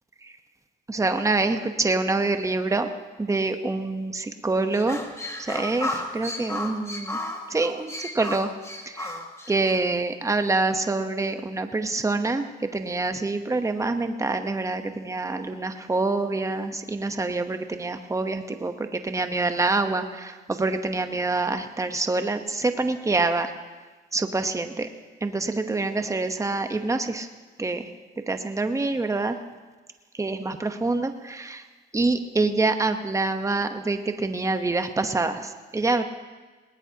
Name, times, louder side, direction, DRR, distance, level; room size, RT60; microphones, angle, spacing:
voice 1, 0.9-2.9 3.2-5.0 5.4-7.2 7.5-8.5 8.9-9.2 9.5-23.5 24.1-24.9 25.2-27.3 27.6-27.9 28.2-29.4 30.1-31.7 31.9-36.0, right 3 dB, 15° right, 7 dB, 1.0 m, -26 dB
sound 1, 4.7-9.8, left 1 dB, 15° left, 1.9 m, -33 dB
19.5 x 18.5 x 2.9 m, 1.3 s
cardioid pair, 90°, 20 cm